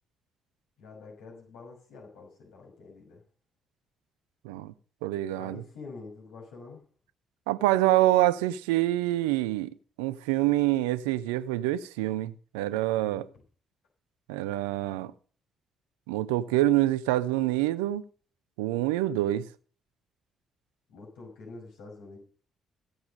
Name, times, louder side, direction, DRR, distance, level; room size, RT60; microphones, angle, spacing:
voice 1, 0.8-3.2 5.3-6.8 12.9-13.2 20.9-22.2, left 3 dB, 70° left, 5.8 m, -46 dB
voice 2, 5.0-5.6 7.5-13.3 14.3-15.1 16.1-18.0 18.6-19.5, right 15 dB, 75° right, 0.6 m, -26 dB
16.0 x 7.0 x 6.5 m
figure-of-eight pair, 40°, 0 cm